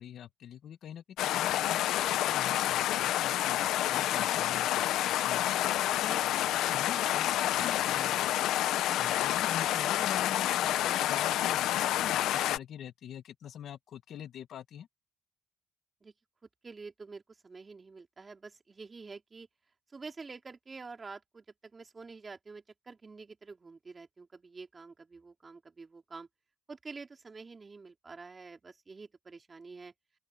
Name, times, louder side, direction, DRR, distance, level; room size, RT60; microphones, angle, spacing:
voice 1, 0.0-3.6 3.9-5.5 6.0-6.2 6.7-8.2 9.0-14.9, left 9 dB, 70° left, 1.7 m, -44 dB
sound 1, 1.2-12.6, left 13 dB, 85° left, 0.9 m, -29 dB
voice 2, 16.6-19.5 19.9-26.3 26.7-29.9, right 4 dB, 30° right, 3.6 m, -48 dB
open air
cardioid pair, 90°, 0 cm